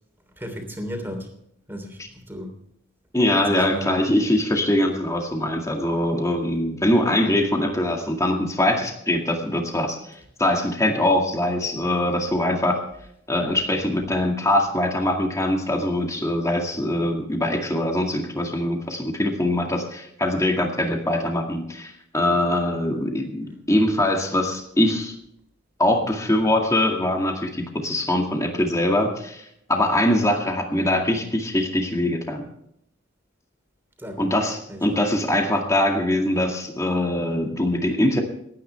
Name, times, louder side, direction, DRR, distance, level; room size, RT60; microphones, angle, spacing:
voice 1, 0.4-1.3 1.7-2.6 3.3-4.0 11.8-11.9 34.0-34.4 34.7-35.0, equal, 10° right, 4 dB, 3.3 m, -34 dB
voice 2, 3.1-10.0 10.4-12.8 13.3-25.1 25.8-32.4 34.2-38.2, left 1 dB, 15° left, 2 dB, 2.0 m, -22 dB
28.5 x 9.7 x 3.4 m, 0.74 s
head